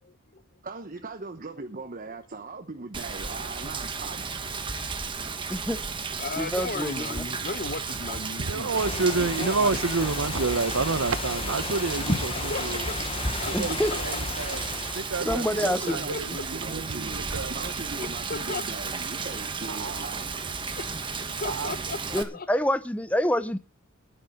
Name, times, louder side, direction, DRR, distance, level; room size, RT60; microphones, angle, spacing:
voice 1, 0.6-4.4 15.2-17.2 17.5-20.2, right 3 dB, 40° right, 1.0 m, -39 dB
Rain, 2.9-22.2, right 5 dB, 25° right, 1.2 m, -34 dB
voice 2, 5.5-5.8 6.4-7.2 13.5-13.9 15.3-16.0 16.3-16.4 22.1-23.6, equal, 5° left, 0.6 m, -27 dB
voice 3, 6.2-8.7 9.2-9.7 12.5-13.0 13.4-14.0 14.4-14.7 15.9-16.5 18.3-18.7 20.8-20.9 21.4-22.5, left 3 dB, 45° left, 1.0 m, -35 dB
voice 4, 8.4-12.9 13.4-14.6 14.9-17.7 19.7-20.1 21.5-21.8, right 4 dB, 75° right, 0.9 m, -29 dB
sound 1, 8.7-15.0, left 2 dB, 25° left, 1.2 m, -33 dB
10.5 x 10.0 x 6.6 m
head